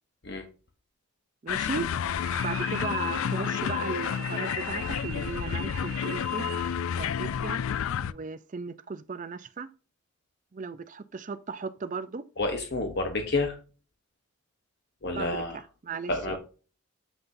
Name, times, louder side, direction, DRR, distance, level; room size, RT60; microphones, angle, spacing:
voice 1, 1.4-1.9 2.4-6.5 7.0-7.6 8.0-9.7 10.5-12.2 15.2-16.4, right 4 dB, 35° right, 0.4 m, -36 dB
sound 1, 1.5-8.1, left 8 dB, 70° left, 0.3 m, -30 dB
sound 2, 2.2-6.9, right 10 dB, 70° right, 0.8 m, -42 dB
voice 2, 12.4-13.6 15.0-15.6 16.1-16.4, left 2 dB, 50° left, 0.9 m, -29 dB
8.0 x 5.8 x 2.6 m
head